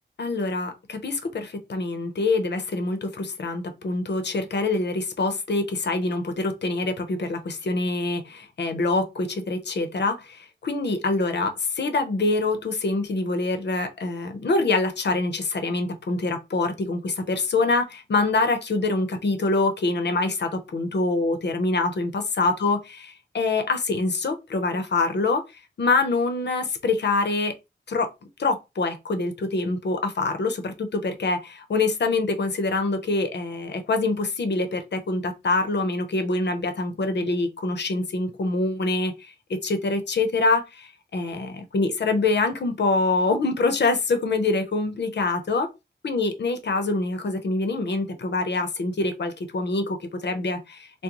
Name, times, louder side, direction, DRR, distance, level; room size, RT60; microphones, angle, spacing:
voice 1, 0.2-23.0 23.3-25.4 25.8-27.5 27.9-28.1 28.4-39.1 39.5-45.7 46.0-51.0, left 3 dB, 65° left, 0.7 m, -25 dB
3.7 x 2.1 x 2.9 m
wide cardioid pair, 95°, 19 cm